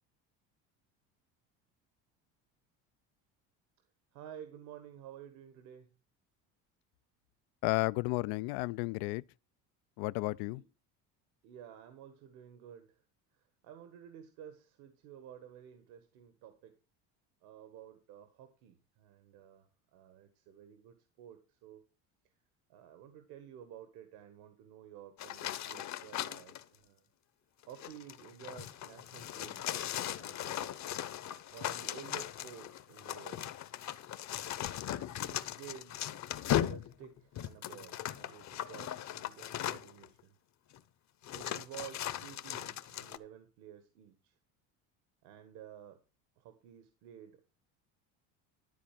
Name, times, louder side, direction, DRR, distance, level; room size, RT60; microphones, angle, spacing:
voice 1, 4.1-5.9 10.5-10.6 11.4-13.0 13.3-16.7 17.4-21.8 22.7-27.1 27.7-29.6 30.1-30.9 31.5-33.5 35.2-36.0 36.5-40.3 41.3-44.4 45.2-46.0 46.4-47.5, right 9 dB, 75° right, 1.6 m, -52 dB
voice 2, 7.6-9.2 10.0-10.6, left 21 dB, 75° left, 0.5 m, -32 dB
sound 1, 25.2-26.6 27.6-40.1 40.7-40.8 41.2-43.2, left 11 dB, 45° left, 0.9 m, -38 dB
12.5 x 4.2 x 7.4 m
supercardioid pair, 100°, 37 cm